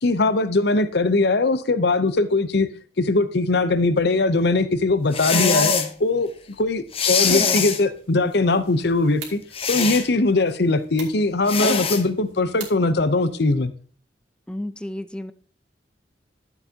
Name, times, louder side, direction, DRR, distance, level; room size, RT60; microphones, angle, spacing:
voice 1, 0.0-2.7 3.0-5.7 6.0-6.3 6.6-9.4 9.7-13.7, left 3 dB, 60° left, 0.7 m, -20 dB
sound 1, 5.1-5.9 6.9-7.8 9.5-10.1 11.5-12.0, left 5 dB, 30° left, 0.8 m, -22 dB
sound 2, 7.1-13.5, right 6 dB, 90° right, 2.4 m, -44 dB
voice 2, 14.5-15.3, left 1 dB, 5° left, 0.4 m, -32 dB
11.5 x 7.9 x 2.8 m
head